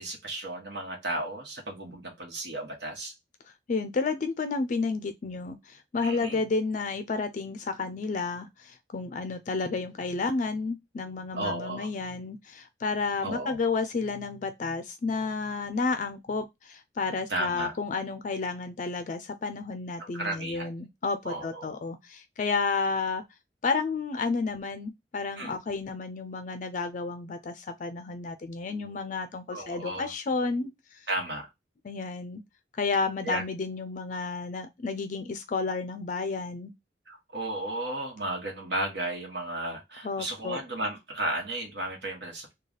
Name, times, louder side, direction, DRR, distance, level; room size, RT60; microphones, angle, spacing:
voice 1, 0.0-3.1 6.0-6.4 11.3-11.9 13.2-13.6 17.3-17.7 20.0-20.7 21.2-21.7 25.4-25.6 29.5-30.1 31.1-31.5 33.2-33.4 37.1-42.5, right 1 dB, 65° right, 1.1 m, -34 dB
voice 2, 3.7-23.2 23.6-31.1 31.8-32.4 32.8-36.7 40.0-40.6, left 4 dB, 45° left, 0.4 m, -31 dB
3.2 x 2.3 x 3.8 m
head